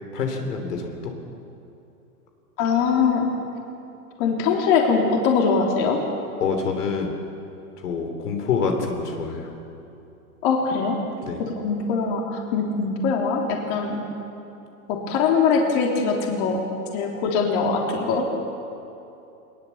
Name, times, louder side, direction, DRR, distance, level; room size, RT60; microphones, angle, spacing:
voice 1, 0.1-1.1 6.4-7.1 7.8-9.5 11.2-11.4, left 5 dB, 75° left, 4 dB, 3.5 m, -26 dB
voice 2, 2.6-3.3 4.2-6.0 10.4-11.0 11.4-14.0 14.9-16.6 16.9-18.3, left 5 dB, 40° left, 0 dB, 3.3 m, -22 dB
21.0 x 21.0 x 7.2 m, 2.8 s
hypercardioid pair, 145°, 46 cm